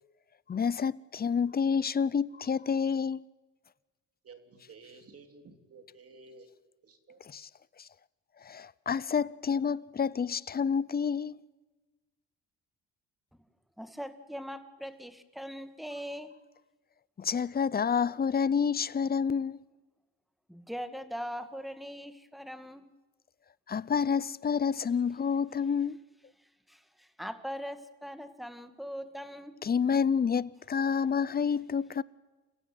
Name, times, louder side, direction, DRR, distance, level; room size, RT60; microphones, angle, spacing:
voice 1, 0.5-3.2 7.3-7.5 8.5-11.4 17.2-19.6 23.7-26.0 29.6-32.0, left 6 dB, 30° left, 0.7 m, -28 dB
voice 2, 4.2-6.5 6.8-7.2, right 4 dB, 50° right, 3.4 m, -53 dB
voice 3, 13.8-16.3 20.5-22.8 26.4-29.6, equal, ahead, 2.1 m, -41 dB
28.5 x 16.0 x 9.2 m
cardioid pair, 90°, 30 cm